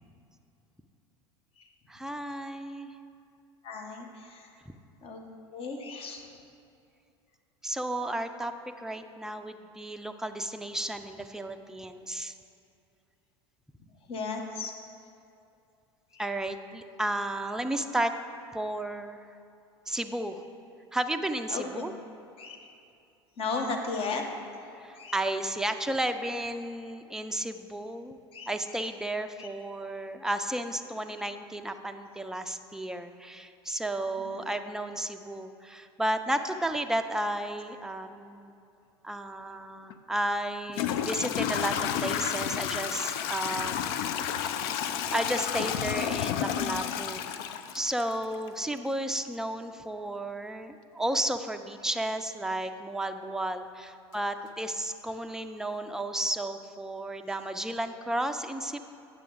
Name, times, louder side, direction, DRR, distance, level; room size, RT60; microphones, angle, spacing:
voice 1, 1.9-2.9 4.7-4.8 7.6-8.5 8.8-12.3 16.2-18.1 18.5-19.2 19.9-20.4 20.9-21.9 24.8-28.2 28.5-38.6 39.0-47.2 47.5-58.8, right 1 dB, 5° right, 7 dB, 0.4 m, -33 dB
voice 2, 3.6-4.5 5.0-5.2 5.5-6.3 14.1-14.7 16.1-16.2 21.5-21.9 22.4-22.7 23.4-24.2 24.9-25.2 28.3-28.9 29.4-29.5 34.2-34.4, left 4 dB, 40° left, 2 dB, 1.1 m, -36 dB
Toilet flush / Trickle dribble, 39.9-40.0 40.7-48.5, left 9 dB, 60° left, 0.4 m, -31 dB
8.9 x 6.8 x 3.9 m, 2.6 s
hypercardioid pair, 75°, 14 cm